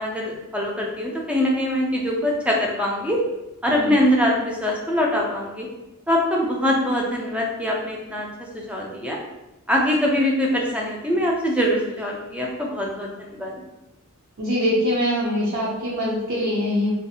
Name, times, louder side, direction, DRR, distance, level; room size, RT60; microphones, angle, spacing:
voice 1, 0.0-3.2 3.6-5.7 6.1-8.3 8.5-9.2 9.7-13.6, left 1 dB, 5° right, -1 dB, 0.4 m, -23 dB
voice 2, 14.4-16.9, equal, 70° right, -5 dB, 0.6 m, -23 dB
2.6 x 2.4 x 2.7 m, 0.95 s
head